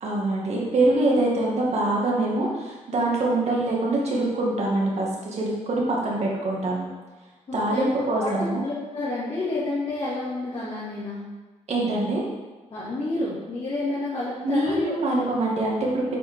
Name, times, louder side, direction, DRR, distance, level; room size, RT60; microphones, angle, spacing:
voice 1, 0.0-6.8 7.5-8.6 11.7-12.2 14.4-16.2, right 2 dB, 60° right, -3 dB, 2.2 m, -24 dB
voice 2, 7.5-7.9 8.2-11.2 12.7-14.9, left 2 dB, 50° left, -10 dB, 2.5 m, -29 dB
8.4 x 5.1 x 4.7 m, 1.3 s
wide cardioid pair, 130°, 13 cm